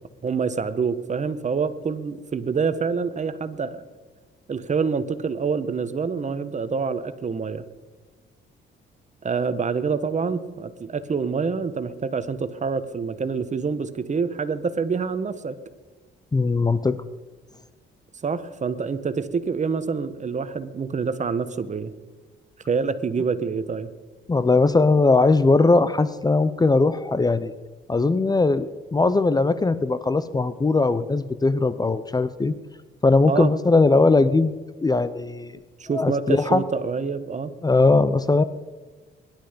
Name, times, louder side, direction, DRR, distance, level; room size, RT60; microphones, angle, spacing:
voice 1, 0.2-3.8 4.5-7.6 9.2-15.6 18.2-21.9 22.7-23.9 33.2-33.5 35.8-37.5, right 5 dB, 35° right, 12 dB, 1.3 m, -26 dB
voice 2, 16.3-17.0 24.3-27.5 27.9-32.5 33.0-34.5 34.8-35.5 35.9-36.7 37.6-38.4, left 3 dB, 20° left, 14 dB, 0.7 m, -19 dB
23.5 x 12.0 x 5.2 m, 1.4 s
cardioid pair, 90°, 20 cm